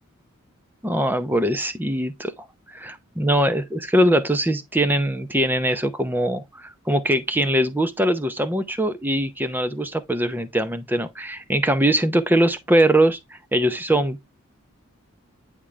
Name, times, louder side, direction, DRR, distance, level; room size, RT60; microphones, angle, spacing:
voice 1, 0.8-14.3, right 1 dB, 10° right, 0.6 m, -22 dB
9.7 x 3.7 x 3.2 m
head